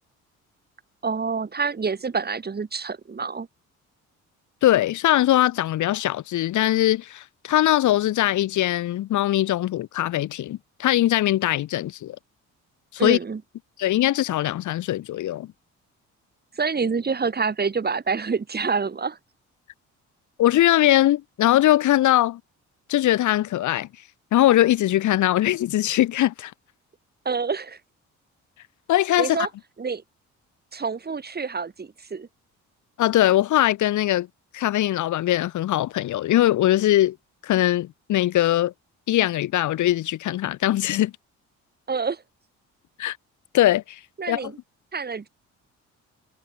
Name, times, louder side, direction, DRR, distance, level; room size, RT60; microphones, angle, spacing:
voice 1, 1.0-3.5 13.0-13.4 16.6-19.2 27.2-27.8 29.2-29.5 29.8-30.0 30.7-32.3 41.9-42.2 44.2-44.6 44.9-45.3, right 5 dB, 30° right, 4.0 m, -27 dB
voice 2, 4.6-12.2 12.9-13.2 13.8-15.5 20.4-22.4 22.9-23.9 24.3-26.5 28.9-29.4 33.0-34.3 34.5-37.2 37.4-38.7 39.1-41.1 43.0-43.2 43.5-44.0 44.3-44.5, left 14 dB, 75° left, 1.3 m, -21 dB
cardioid pair, 90°, 30 cm